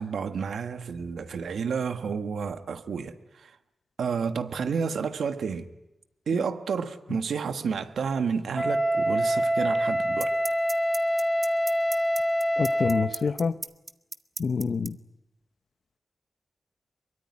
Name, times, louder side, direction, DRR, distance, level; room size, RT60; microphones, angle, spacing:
voice 1, 0.0-3.5 4.0-5.7 6.3-10.3, right 6 dB, 90° right, 1.4 m, -30 dB
Wind instrument woodwind instrument, 8.5-13.2, equal, 5° right, 2.2 m, -25 dB
sound 1, 9.1-9.2 10.2-14.9, right 3 dB, 45° right, 1.1 m, -35 dB
voice 2, 12.6-13.6 14.4-15.0, left 5 dB, 65° left, 0.9 m, -26 dB
23.0 x 22.5 x 9.8 m
wide cardioid pair, 80°, 0 cm